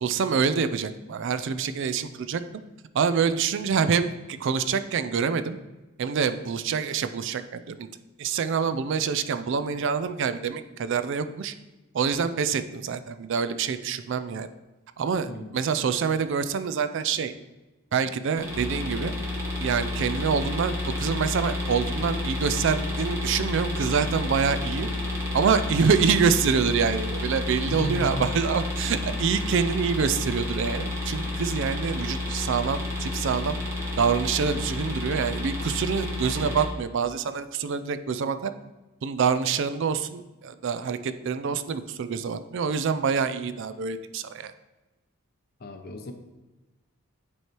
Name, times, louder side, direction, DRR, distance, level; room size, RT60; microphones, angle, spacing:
voice 1, 0.0-2.4 2.9-5.6 6.0-7.9 8.2-11.5 11.9-14.5 15.0-17.3 17.9-19.1 19.6-24.9 25.3-33.6 34.0-38.5 39.0-44.5, right 6 dB, 60° right, 12 dB, 0.4 m, -26 dB
sound 1, 18.4-36.7, left 2 dB, 15° right, 1.4 m, -30 dB
voice 2, 27.7-28.3 45.6-46.1, left 1 dB, 45° left, 6 dB, 0.7 m, -34 dB
9.4 x 3.2 x 4.4 m, 1.1 s
head